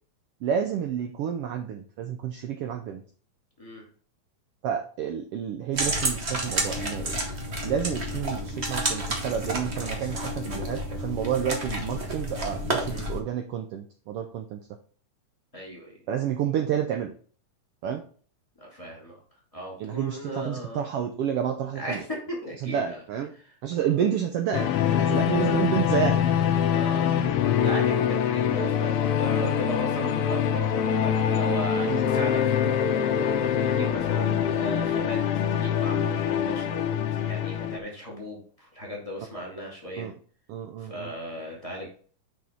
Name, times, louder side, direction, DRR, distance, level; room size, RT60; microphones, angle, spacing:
voice 1, 0.4-3.0 4.6-7.2 7.6-14.7 16.1-17.1 17.8-18.0 19.8-22.0 22.6-23.3 23.6-24.7 25.0-26.2 31.8-31.9 40.0-40.1 40.5-41.1, right 8 dB, 80° right, 5 dB, 1.3 m, -29 dB
sound 1, 5.7-13.2, right 1 dB, 50° right, 0.8 m, -30 dB
voice 2, 15.5-16.0 18.6-19.2 19.5-20.8 21.7-23.0 23.3-23.5 25.4-25.6 26.7-27.2 27.6-33.0 33.5-40.1 40.8-41.9, equal, 15° left, -3 dB, 1.9 m, -36 dB
sound 2, 24.5-37.8, left 8 dB, 85° left, 1.2 m, -24 dB
6.4 x 5.1 x 4.3 m, 0.43 s
omnidirectional pair, 3.4 m